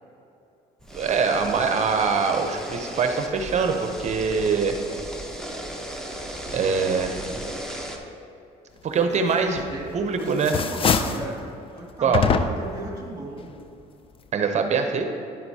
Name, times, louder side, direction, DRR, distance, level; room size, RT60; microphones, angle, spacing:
sound 1, 0.8-8.0, right 1 dB, 5° left, 0.8 m, -35 dB
voice 1, 0.9-4.7 6.5-7.1 8.8-9.6 9.9-10.5 12.0-12.2 14.3-15.0, right 5 dB, 45° right, 5 dB, 0.6 m, -23 dB
voice 2, 6.6-7.6 9.7-13.5, right 2 dB, 20° right, -2 dB, 1.9 m, -37 dB
sound 2, 9.6-10.0 10.3-11.3 12.1-12.8, left 6 dB, 30° left, 0.4 m, -23 dB
9.9 x 7.7 x 2.8 m, 2.7 s
cardioid pair, 110°, 17 cm